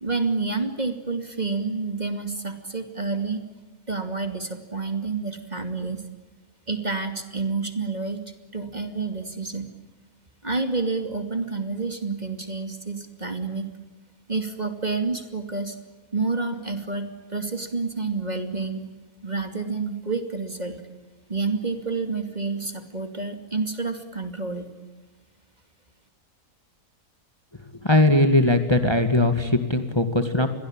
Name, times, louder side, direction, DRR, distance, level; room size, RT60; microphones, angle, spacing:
voice 1, 0.0-3.4 3.9-6.0 6.7-8.2 8.5-9.7 10.4-13.7 14.3-15.8 16.1-18.8 19.2-20.8 21.3-24.7, right 4 dB, 25° right, 7 dB, 2.6 m, -29 dB
voice 2, 27.8-30.5, left 1 dB, 15° left, 7 dB, 2.0 m, -20 dB
28.5 x 22.5 x 8.9 m, 1.2 s
omnidirectional pair, 1.6 m